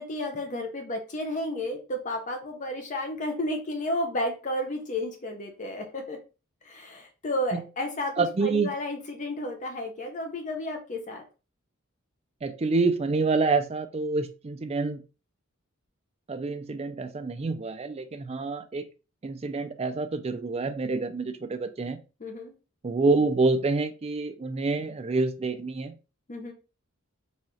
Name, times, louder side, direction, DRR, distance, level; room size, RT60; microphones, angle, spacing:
voice 1, 0.0-6.2 6.6-11.2 22.2-22.5 26.3-26.5, left 1 dB, 35° left, 3 dB, 0.6 m, -32 dB
voice 2, 8.2-8.7 12.4-15.0 16.3-18.9 19.2-22.0 22.8-26.0, right 3 dB, 30° right, 8 dB, 0.4 m, -27 dB
4.1 x 2.4 x 3.1 m, 0.32 s
head